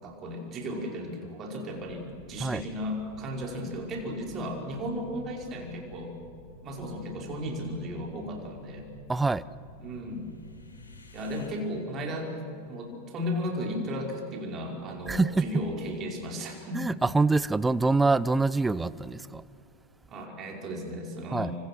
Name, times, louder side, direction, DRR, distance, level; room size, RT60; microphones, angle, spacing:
voice 1, 0.0-6.1 6.6-8.8 9.8-10.3 11.1-12.3 12.7-16.8 20.1-21.6, equal, 30° right, 5.3 m, -35 dB
sound 1, 1.7-11.5, left 2 dB, 75° left, 3.9 m, -51 dB
voice 2, 9.1-9.4 15.1-15.6 16.7-19.4 21.3-21.5, right 3 dB, 10° right, 0.6 m, -25 dB
29.0 x 26.0 x 6.2 m
figure-of-eight pair, 90°, 0 cm